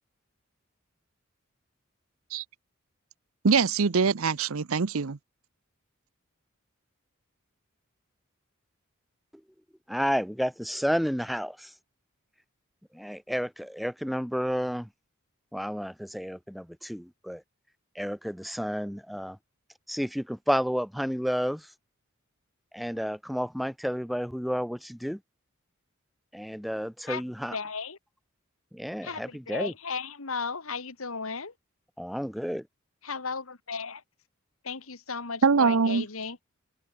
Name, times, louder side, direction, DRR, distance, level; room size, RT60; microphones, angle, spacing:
voice 1, 3.4-5.2 35.4-36.0, right 5 dB, 90° right, 0.7 m, -23 dB
voice 2, 9.9-11.7 12.9-14.9 15.5-17.4 18.0-19.4 19.9-21.7 22.7-25.2 26.3-27.6 28.7-29.7 32.0-32.7, equal, ahead, 0.6 m, -31 dB
voice 3, 27.5-28.0 29.0-31.5 33.0-34.0 34.6-36.4, left 5 dB, 85° left, 2.1 m, -35 dB
head